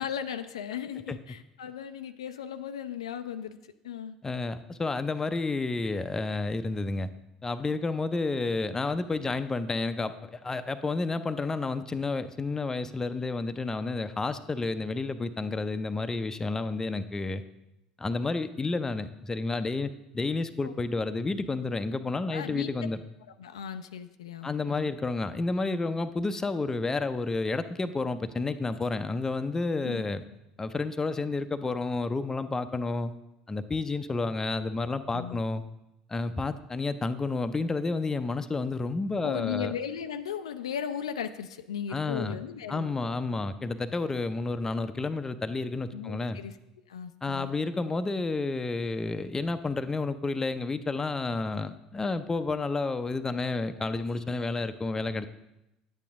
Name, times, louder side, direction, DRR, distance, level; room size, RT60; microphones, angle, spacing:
voice 1, 0.0-3.6 3.8-4.2 20.6-20.7 22.3-22.7 23.4-24.9 29.8-30.0 35.1-35.4 39.2-42.9 45.9-46.5 46.9-47.5, left 8 dB, 75° left, 9 dB, 0.4 m, -36 dB
voice 2, 4.2-7.1 7.4-17.4 18.0-23.0 24.4-30.2 30.6-33.1 33.5-35.6 36.1-39.7 41.9-42.4 42.7-46.4 47.2-55.3, left 3 dB, 15° left, 10 dB, 0.6 m, -30 dB
9.8 x 8.5 x 3.6 m, 0.90 s
figure-of-eight pair, 70°, 3 cm